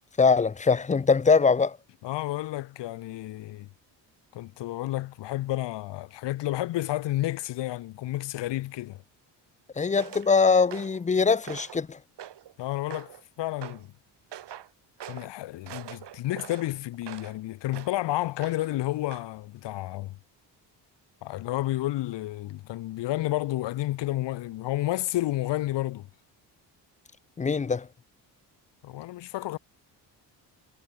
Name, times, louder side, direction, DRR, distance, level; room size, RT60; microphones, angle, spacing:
voice 1, 0.2-1.8 9.8-12.0 27.4-27.9, left 5 dB, 20° left, 0.4 m, -22 dB
voice 2, 2.0-3.7 4.3-9.0 12.6-13.9 15.1-20.2 21.2-26.1 28.8-29.6, left 16 dB, 75° left, 1.0 m, -31 dB
sound 1, 10.0-10.3 10.7-11.0 11.4-11.8 12.2-12.5 12.9-13.2 13.6-13.8 14.3-14.7 15.0-15.3 15.7-17.4 17.7-18.0 18.4-18.8 19.1-19.3, right 11 dB, 70° right, 7.1 m, -43 dB
cardioid pair, 100°, 43 cm